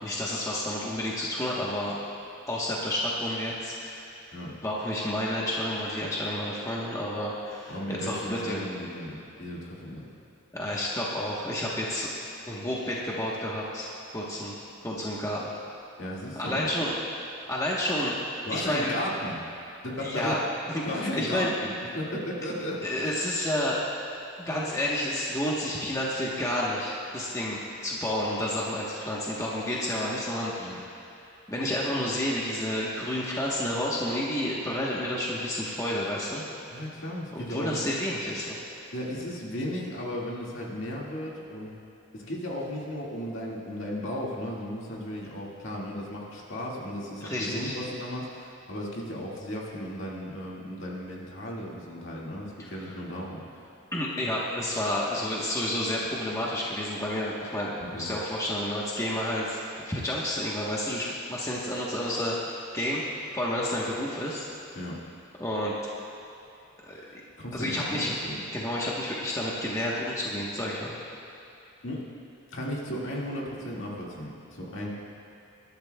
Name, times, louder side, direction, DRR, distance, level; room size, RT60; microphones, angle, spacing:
voice 1, 0.0-2.0 2.5-4.0 4.6-8.6 10.5-12.1 12.5-14.5 14.8-15.5 16.4-17.0 17.5-18.2 18.5-18.9 20.0-20.4 20.9-21.5 22.8-23.8 24.4-31.0 31.5-36.4 37.3-38.6 47.2-47.8 53.9-59.6 59.9-63.0 63.3-64.5 65.4-65.7 66.8-67.0 67.5-68.1 68.5-71.0, left 1 dB, 15° left, -5 dB, 1.1 m, -30 dB
voice 2, 7.7-10.1 16.0-16.7 18.4-19.4 19.8-20.4 20.8-23.1 30.6-30.8 36.7-38.0 38.9-41.8 42.1-53.7 57.8-58.1 64.7-65.0 66.9-68.4 71.8-72.0 72.5-74.9, equal, 60° left, -4 dB, 2.0 m, -35 dB
20.5 x 12.0 x 2.3 m, 2.8 s
head